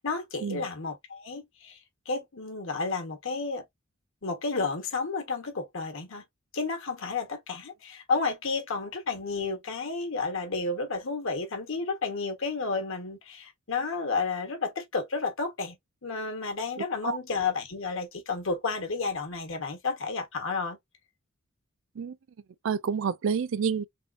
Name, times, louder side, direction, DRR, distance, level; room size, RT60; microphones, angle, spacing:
voice 1, 0.0-1.8 2.0-3.7 4.2-6.2 6.5-20.8, left 4 dB, 65° left, 1.1 m, -31 dB
voice 2, 22.6-23.8, right 6 dB, 65° right, 0.4 m, -28 dB
3.5 x 2.4 x 2.4 m
head